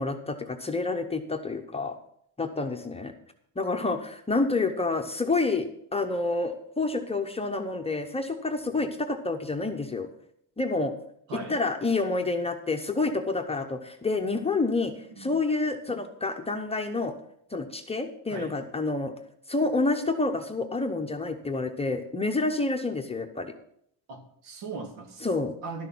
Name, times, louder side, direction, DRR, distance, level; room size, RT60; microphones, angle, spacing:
voice 1, 0.0-2.0 2.4-3.1 3.6-10.1 10.6-10.9 11.5-17.1 17.5-19.1 19.5-23.5 25.2-25.5, left 3 dB, 15° left, 4 dB, 0.8 m, -28 dB
voice 2, 11.3-11.6 15.1-15.3 18.3-18.6 24.1-25.9, right 3 dB, 75° right, 5 dB, 2.2 m, -39 dB
12.0 x 6.7 x 6.1 m, 0.69 s
cardioid pair, 130°, 45 cm